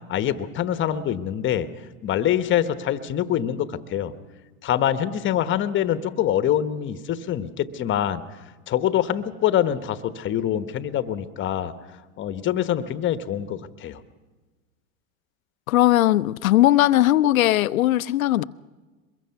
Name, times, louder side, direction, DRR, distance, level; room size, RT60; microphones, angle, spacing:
voice 1, 0.1-1.7 2.0-4.1 4.6-8.2 8.7-11.7 12.2-14.0, left 10 dB, 30° left, 1.1 m, -25 dB
voice 2, 15.7-18.5, left 14 dB, 85° left, 0.7 m, -18 dB
23.0 x 21.5 x 5.8 m
hypercardioid pair, 115°, 40 cm